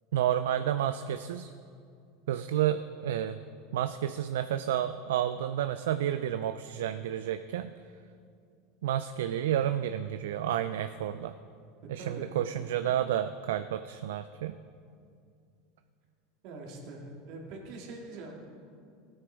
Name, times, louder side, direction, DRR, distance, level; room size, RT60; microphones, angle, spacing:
voice 1, 0.1-1.5 2.3-3.4 3.7-7.7 8.8-11.3 11.9-14.5, right 11 dB, 80° right, 10 dB, 0.3 m, -30 dB
voice 2, 12.0-12.8 16.4-18.3, right 2 dB, 60° right, -1 dB, 2.3 m, -43 dB
15.0 x 9.0 x 3.5 m, 2.4 s
hypercardioid pair, 90°, 0 cm